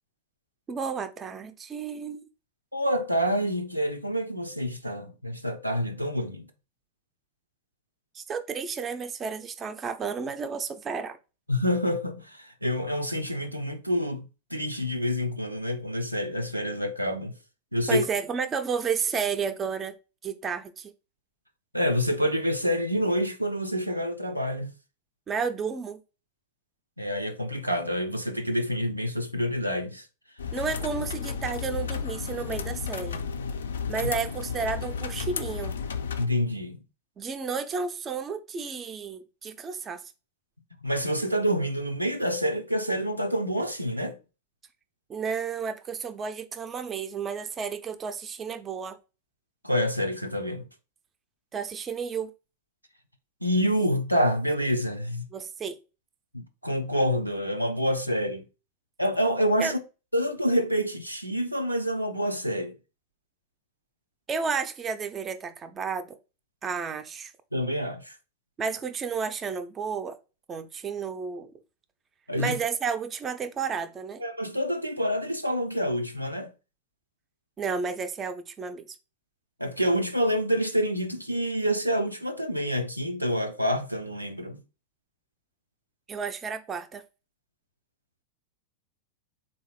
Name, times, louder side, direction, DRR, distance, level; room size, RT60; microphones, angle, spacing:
voice 1, 0.7-2.3 8.1-11.2 17.9-19.9 20.2-20.9 25.3-26.0 30.5-33.2 33.9-35.8 37.2-40.0 45.1-49.0 51.5-52.3 55.3-55.8 59.6-59.7 64.3-66.2 66.6-67.3 68.6-70.2 70.5-71.5 72.4-74.2 77.6-78.9 86.1-87.0, right 6 dB, 20° right, 0.4 m, -32 dB
voice 2, 2.7-6.5 11.5-17.3 17.7-18.1 21.7-24.7 27.0-30.1 36.2-36.8 40.8-44.2 49.6-50.7 53.4-55.3 56.3-58.4 59.0-59.8 60.1-62.7 67.5-68.2 72.3-72.6 74.2-76.5 79.6-84.6, equal, 90° right, 0.4 m, -27 dB
sound 1, 30.4-36.3, left 6 dB, 65° left, 0.3 m, -33 dB
3.6 x 2.5 x 3.0 m
figure-of-eight pair, 90°, 0 cm